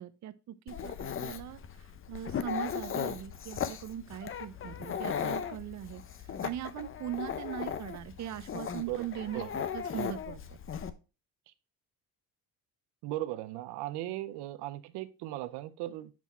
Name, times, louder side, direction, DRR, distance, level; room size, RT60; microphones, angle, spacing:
voice 1, 0.0-6.0 6.4-9.4 9.7-10.6, right 11 dB, 45° right, 0.6 m, -40 dB
Dog, 0.7-10.9, left 8 dB, 35° left, 0.6 m, -37 dB
voice 2, 13.0-16.1, right 15 dB, 90° right, 0.6 m, -37 dB
7.5 x 3.6 x 4.1 m
cardioid pair, 100°, 39 cm